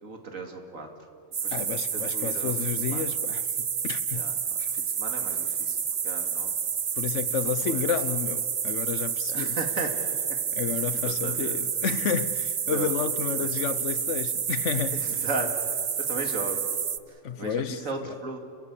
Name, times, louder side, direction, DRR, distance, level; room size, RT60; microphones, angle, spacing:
voice 1, 0.0-0.9 1.4-3.0 4.1-4.3 4.7-5.8 6.0-6.5 7.4-7.8 9.3-10.0 10.3-11.6 12.7-13.0 13.4-13.6 14.9-16.6 17.1-18.4, right 3 dB, 85° right, 2.7 m, -36 dB
sound 1, 1.3-17.0, right 7 dB, 45° right, 0.5 m, -29 dB
voice 2, 1.5-4.3 4.6-4.7 7.0-9.6 10.5-15.0 17.2-18.1, left 8 dB, 65° left, 1.1 m, -31 dB
30.0 x 15.5 x 8.4 m
omnidirectional pair, 1.4 m